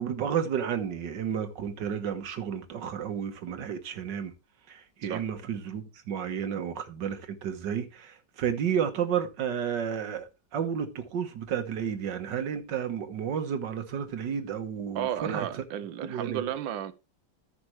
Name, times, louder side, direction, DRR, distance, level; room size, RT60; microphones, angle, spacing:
voice 1, 0.0-4.3 4.7-15.5 16.0-16.4, right 8 dB, 70° right, 1.9 m, -32 dB
voice 2, 14.9-16.9, right 10 dB, 90° right, 1.5 m, -33 dB
14.0 x 6.0 x 3.2 m
omnidirectional pair, 2.0 m